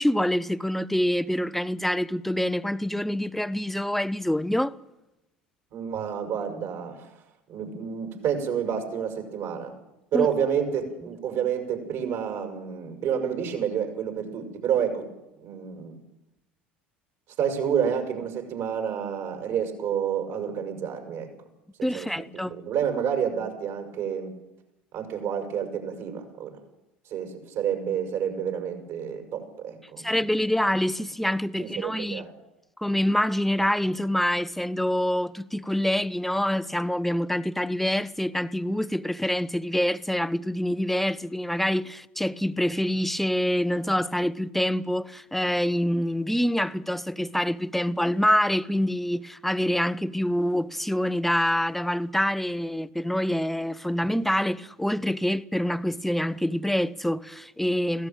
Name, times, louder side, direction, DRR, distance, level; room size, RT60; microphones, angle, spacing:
voice 1, 0.0-4.7 10.1-10.3 21.8-22.5 30.0-32.3 32.8-58.1, left 1 dB, 5° left, 0.8 m, -26 dB
voice 2, 5.7-7.2 7.5-9.8 10.1-15.1 15.4-16.0 17.4-21.3 21.8-24.3 24.9-26.5 27.1-30.1 31.6-32.3, right 8 dB, 55° right, 6.2 m, -29 dB
22.0 x 16.5 x 9.1 m
hypercardioid pair, 70°, 6 cm